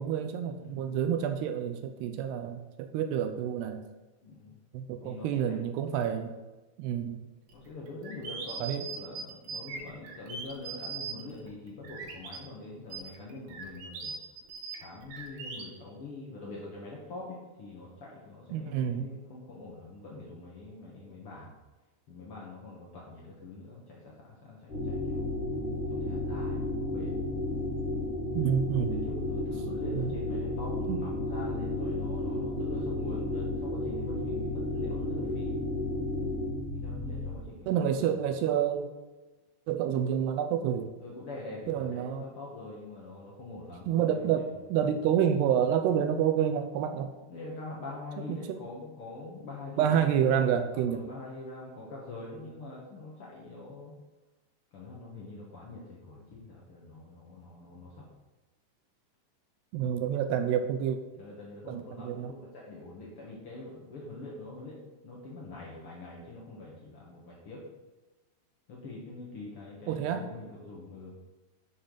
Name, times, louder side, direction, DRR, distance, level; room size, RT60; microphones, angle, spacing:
voice 1, 0.0-3.8 4.7-6.3 6.8-7.2 8.6-8.9 18.5-19.1 28.3-29.0 29.9-30.1 30.9-31.0 37.7-38.9 39.7-40.9 41.7-42.3 43.9-47.1 48.3-48.6 49.8-51.1 59.7-61.0 61.7-62.3 69.9-70.3, right 9 dB, 80° right, 7 dB, 2.5 m, -28 dB
voice 2, 0.6-1.0 4.2-4.6 5.0-5.6 7.5-14.2 14.8-21.6 22.1-25.3 25.9-27.2 28.9-35.6 36.7-38.2 41.0-44.3 44.5-44.9 47.3-50.4 50.7-53.9 54.7-58.1 61.1-67.6 68.7-71.3, left 2 dB, 80° left, -4 dB, 1.2 m, -44 dB
sound 1, 7.5-12.4 12.9-15.6, right 5 dB, 60° right, 2.3 m, -40 dB
sound 2, 24.7-37.3, left 2 dB, 35° left, 2.7 m, -32 dB
11.5 x 6.9 x 4.0 m, 1.2 s
omnidirectional pair, 5.1 m